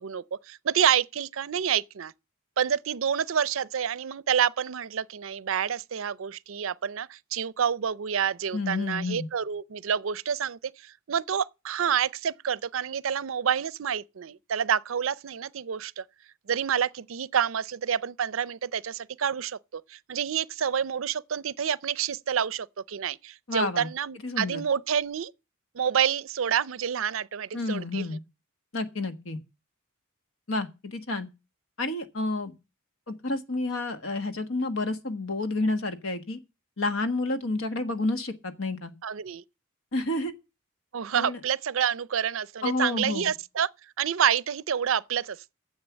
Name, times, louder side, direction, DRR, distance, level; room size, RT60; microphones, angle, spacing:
voice 1, 0.0-2.1 2.6-16.0 16.5-25.3 25.7-28.0 39.0-39.4 40.9-43.7 44.0-45.5, right 8 dB, 70° right, 0.5 m, -28 dB
voice 2, 8.5-9.3 23.5-23.9 24.2-24.6 27.5-28.2 28.7-29.4 30.5-31.3 31.8-32.5 33.1-36.4 36.8-38.9 39.9-40.3 41.1-41.4 42.6-43.3, left 2 dB, 70° left, 1.4 m, -30 dB
9.6 x 7.4 x 7.3 m
head